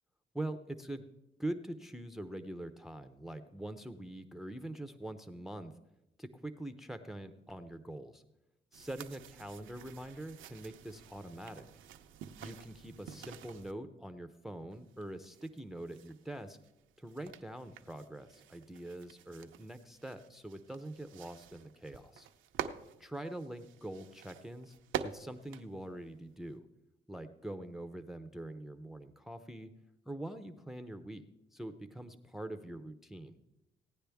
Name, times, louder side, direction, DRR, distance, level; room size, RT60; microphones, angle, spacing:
voice 1, 0.3-1.0 1.4-5.7 6.2-8.2 8.7-11.7 12.4-16.6 17.0-22.3 23.0-24.7 25.0-26.6 27.1-29.7 30.1-31.2 31.5-33.4, right 1 dB, ahead, 9 dB, 0.6 m, -44 dB
sound 1, 8.7-13.7 14.7-26.6, right 9 dB, 75° right, 0.7 m, -47 dB
16.5 x 9.6 x 3.5 m, 0.91 s
cardioid pair, 90°, 20 cm